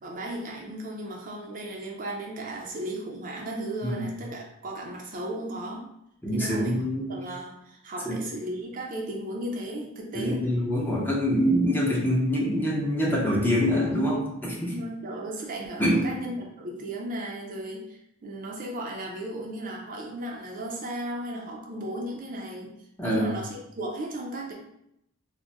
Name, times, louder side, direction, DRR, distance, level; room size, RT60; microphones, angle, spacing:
voice 1, 0.0-5.9 6.3-6.7 7.1-10.5 14.6-22.7 23.0-24.5, right 1 dB, 40° right, -1 dB, 0.4 m, -35 dB
voice 2, 6.2-7.1 8.0-8.2 10.1-14.7 15.8-16.1 23.0-23.3, equal, 10° left, -3 dB, 0.6 m, -25 dB
2.3 x 2.1 x 3.8 m, 0.79 s
head